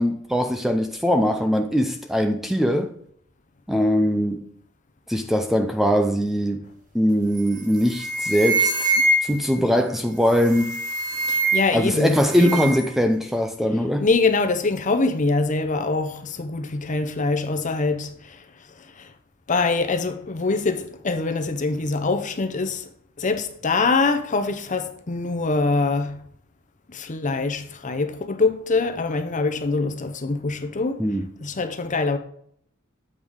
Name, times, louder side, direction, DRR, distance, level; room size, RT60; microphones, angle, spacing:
voice 1, 0.0-2.9 3.7-4.5 5.1-6.6 6.9-8.9 9.2-10.8 11.7-14.0 31.0-31.2, equal, ahead, 0.4 m, -21 dB
sound 1, 7.4-7.6 7.9-9.5 10.4-11.8 12.1-12.9, right 2 dB, 40° right, 1.2 m, -24 dB
voice 2, 11.1-12.7 14.0-19.1 19.5-22.9 23.2-26.2 26.9-31.0 31.4-32.2, left 3 dB, 40° left, 0.7 m, -24 dB
8.0 x 5.1 x 3.6 m
head